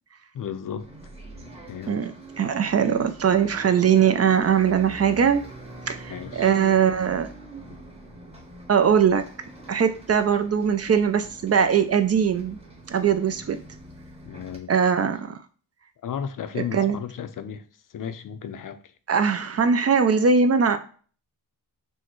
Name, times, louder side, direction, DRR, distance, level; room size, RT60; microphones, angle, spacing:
voice 1, 0.3-0.9 1.7-2.1 6.1-6.5 14.3-14.7 16.0-17.6 17.9-18.8, left 8 dB, 50° left, 0.5 m, -34 dB
Bus, 0.8-14.6, right 1 dB, 15° right, 1.1 m, -44 dB
voice 2, 1.9-5.4 5.9-7.3 8.7-9.2 9.7-12.6 12.9-13.6 14.7-15.4 16.5-17.0 19.1-20.8, right 7 dB, 40° right, 0.4 m, -21 dB
6.2 x 2.1 x 3.0 m
cardioid pair, 85°, 42 cm